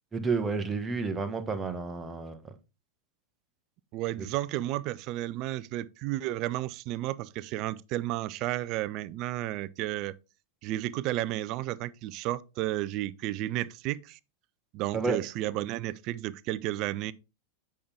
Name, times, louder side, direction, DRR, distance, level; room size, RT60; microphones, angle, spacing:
voice 1, 0.1-2.4 4.2-4.3 14.9-15.2, right 4 dB, 15° right, 1.1 m, -30 dB
voice 2, 3.9-10.1 10.6-14.2 14.7-17.1, right 15 dB, 40° right, 0.4 m, -32 dB
8.5 x 5.7 x 3.4 m
figure-of-eight pair, 90°, 0 cm